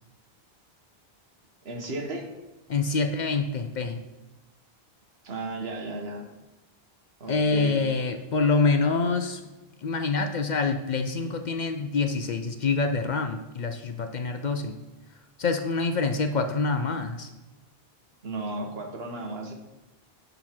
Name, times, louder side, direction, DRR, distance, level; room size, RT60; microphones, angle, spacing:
voice 1, 1.6-2.3 5.2-6.3 7.2-7.8 18.2-19.5, right 2 dB, 75° right, 3 dB, 1.4 m, -34 dB
voice 2, 2.7-4.0 7.3-9.4 9.8-14.8 15.4-17.3, left 4 dB, 55° left, 6 dB, 0.6 m, -26 dB
10.5 x 3.9 x 4.3 m, 1.1 s
omnidirectional pair, 1.0 m